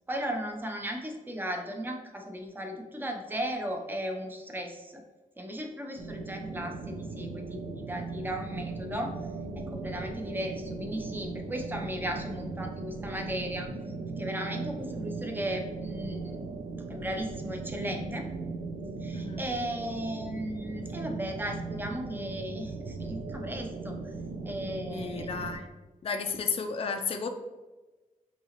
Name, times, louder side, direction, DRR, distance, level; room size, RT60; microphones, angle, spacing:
voice 1, 0.1-5.0 5.4-9.1 9.6-13.7 14.2-16.4 16.9-18.3 19.0-24.0 24.4-25.3, equal, 15° right, 3 dB, 0.6 m, -36 dB
sound 1, 6.0-25.6, right 3 dB, 70° right, 0.5 m, -38 dB
voice 2, 24.9-25.7 26.0-27.3, left 5 dB, 40° left, 5 dB, 0.4 m, -33 dB
5.4 x 2.9 x 2.9 m, 1.2 s
wide cardioid pair, 125°, 14 cm